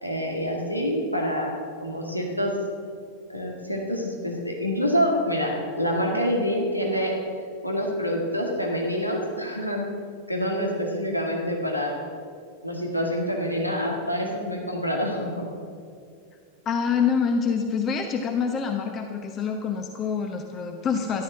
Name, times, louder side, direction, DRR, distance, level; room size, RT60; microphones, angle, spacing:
voice 1, 0.0-2.5 3.3-7.1 7.6-9.9 10.3-12.0 12.6-15.5, equal, 90° left, 0 dB, 2.0 m, -26 dB
voice 2, 16.6-21.2, left 6 dB, 30° left, 5 dB, 1.0 m, -26 dB
13.5 x 12.0 x 6.4 m, 2.3 s
figure-of-eight pair, 90°, 0 cm